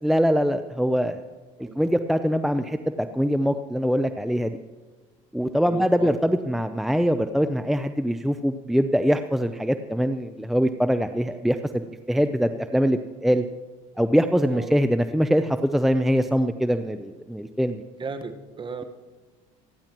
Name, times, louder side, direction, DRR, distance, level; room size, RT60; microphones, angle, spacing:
voice 1, 0.0-1.2 1.8-4.6 5.3-13.4 14.0-17.8, equal, ahead, 9 dB, 0.6 m, -23 dB
voice 2, 1.6-2.0 5.6-6.1 14.4-14.7 18.0-18.8, right 5 dB, 30° right, 8 dB, 1.4 m, -35 dB
27.5 x 10.5 x 3.0 m, 1.3 s
supercardioid pair, 90°, 17 cm